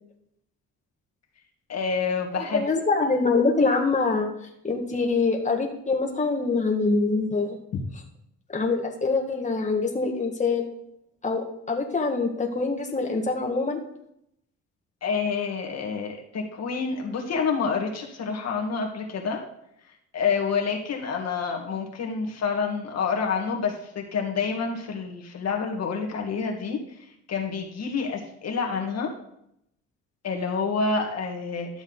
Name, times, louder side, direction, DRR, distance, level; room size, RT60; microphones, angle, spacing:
voice 1, 1.7-2.7 7.7-7.8 15.0-19.4 20.1-26.8 27.3-29.1 30.2-31.8, left 5 dB, 60° left, 1 dB, 1.8 m, -28 dB
voice 2, 2.3-4.3 4.6-7.6 8.5-10.7 11.2-13.8, left 3 dB, 25° left, 1 dB, 1.8 m, -24 dB
12.0 x 7.0 x 3.9 m, 0.75 s
cardioid pair, 90°, 30 cm